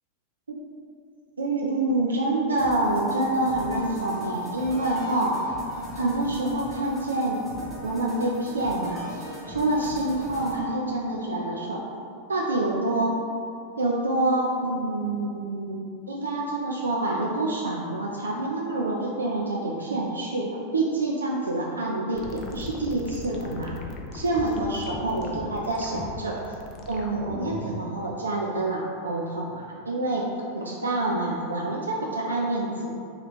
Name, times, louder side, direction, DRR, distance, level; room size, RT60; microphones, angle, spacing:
voice 1, 1.4-5.3 5.9-7.4 7.8-11.8 12.3-13.1 13.8-23.7 24.1-26.5 26.9-30.2 30.5-32.9, right 2 dB, 75° right, -3 dB, 0.3 m, -27 dB
sound 1, 2.6-10.6, left 1 dB, ahead, 0.9 m, -40 dB
sound 2, 22.2-27.8, left 3 dB, 35° left, 0.4 m, -38 dB
2.9 x 2.4 x 4.1 m, 2.5 s
figure-of-eight pair, 90°, 0 cm